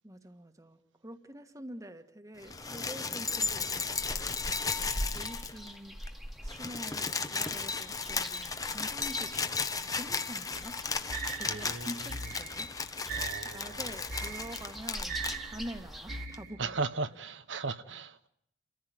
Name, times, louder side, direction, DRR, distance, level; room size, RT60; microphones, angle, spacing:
voice 1, 0.0-4.0 4.8-5.9 6.4-9.3 9.7-10.7 11.3-12.7 13.5-16.7, equal, 20° right, 1.4 m, -46 dB
sound 1, 2.4-5.7 6.0-6.1 6.4-15.4 16.3-16.4, left 4 dB, 20° left, 0.9 m, -35 dB
sound 2, 2.4-16.3, equal, ahead, 1.6 m, -45 dB
voice 2, 4.9-5.2 11.5-12.2 13.1-13.9 16.6-18.3, right 3 dB, 85° right, 1.1 m, -37 dB
sound 3, 10.5-16.8, right 5 dB, 50° right, 1.9 m, -41 dB
29.0 x 14.5 x 9.2 m
head